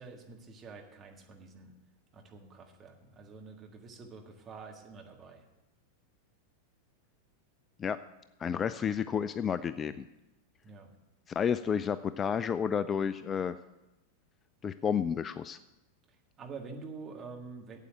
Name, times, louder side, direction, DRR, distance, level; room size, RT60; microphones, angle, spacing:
voice 1, 0.0-1.7 2.1-5.5 10.6-10.9 16.1-17.8, right 4 dB, 25° right, 2 dB, 1.7 m, -47 dB
voice 2, 8.4-10.1 11.3-13.6 14.6-15.6, left 7 dB, 25° left, 14 dB, 0.3 m, -31 dB
8.3 x 8.3 x 7.8 m, 0.98 s
figure-of-eight pair, 90°, 0 cm